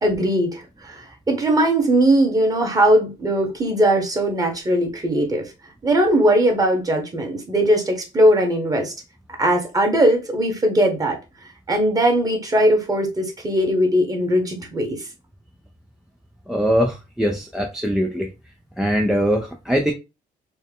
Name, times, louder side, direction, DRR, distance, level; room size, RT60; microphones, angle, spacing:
voice 1, 0.0-5.5 5.8-8.9 9.4-11.2 11.7-15.1, right 1 dB, 20° right, 1.3 m, -19 dB
voice 2, 16.5-18.3 18.8-19.9, equal, 5° right, 0.5 m, -21 dB
4.3 x 2.1 x 3.6 m
cardioid pair, 110°, 17 cm